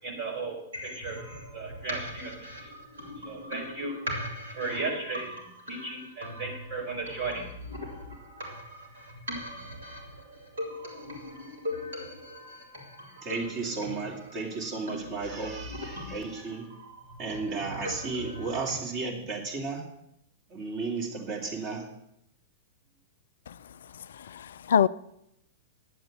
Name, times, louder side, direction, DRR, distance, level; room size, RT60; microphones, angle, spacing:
voice 1, 0.0-1.2 1.5-2.6 3.2-4.0 4.5-5.4 5.7-7.5, right 3 dB, 55° right, 4.9 m, -35 dB
sound 1, 0.7-18.7, left 1 dB, 75° right, 2.9 m, -40 dB
voice 2, 13.2-16.7 17.2-19.8 20.5-21.9, right 4 dB, 40° right, 3.1 m, -34 dB
voice 3, 24.0-24.9, left 8 dB, 65° left, 0.3 m, -26 dB
10.5 x 8.0 x 7.5 m
figure-of-eight pair, 100°, 0 cm